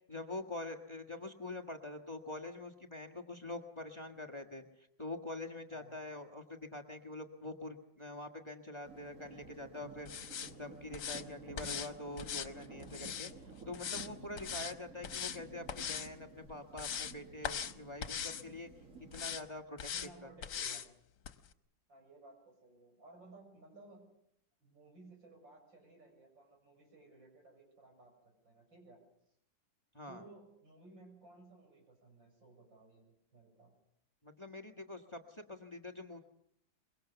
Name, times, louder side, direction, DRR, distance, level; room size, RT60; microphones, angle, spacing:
voice 1, 0.1-4.6 5.0-10.1 10.4-13.3 13.7-18.7 19.1-20.3 29.9-30.2 34.2-36.2, left 2 dB, 15° left, 5 dB, 1.5 m, -45 dB
sound 1, 8.8-19.5, right 4 dB, 45° right, 2.3 m, -53 dB
sound 2, 10.1-10.5 10.9-11.2 11.6-11.9 12.2-13.3 13.7-14.1 14.4-14.7 15.0-15.4 15.7-16.1 16.5-17.1 17.4-17.7 18.0-18.4 19.1-19.4 19.8-20.1 20.4-20.9 21.2-21.3, left 8 dB, 70° left, 1.7 m, -40 dB
voice 2, 19.9-20.9 21.9-24.1 24.6-29.0 30.1-33.7, right 2 dB, 90° right, 1 dB, 7.6 m, -58 dB
24.0 x 22.5 x 6.9 m, 0.73 s
omnidirectional pair, 2.0 m